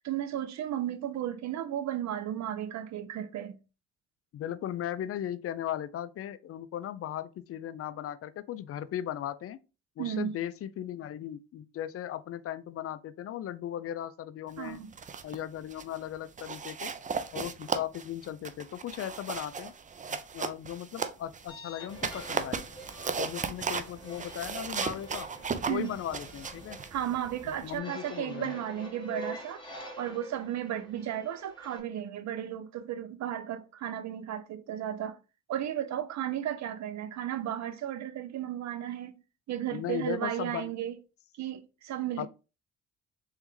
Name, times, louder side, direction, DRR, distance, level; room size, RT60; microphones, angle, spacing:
voice 1, 0.0-3.6 10.0-10.3 14.6-14.9 25.7-25.9 26.9-29.6 30.0-35.2 35.5-39.2 39.5-41.0 41.4-42.3, right 11 dB, 65° right, 0.7 m, -34 dB
voice 2, 4.3-9.6 10.0-14.8 15.2-16.9 17.3-19.7 20.1-22.7 23.2-25.3 25.6-26.8 27.5-28.5 39.7-40.7 42.2-42.3, left 11 dB, 50° left, 0.4 m, -37 dB
sound 1, 14.7-15.4 15.7-16.0 16.4-21.5 21.9-27.8, right 5 dB, 25° right, 0.4 m, -36 dB
sound 2, 21.5-31.8, equal, 15° left, 1.3 m, -47 dB
3.6 x 3.4 x 3.1 m
cardioid pair, 90°, 30 cm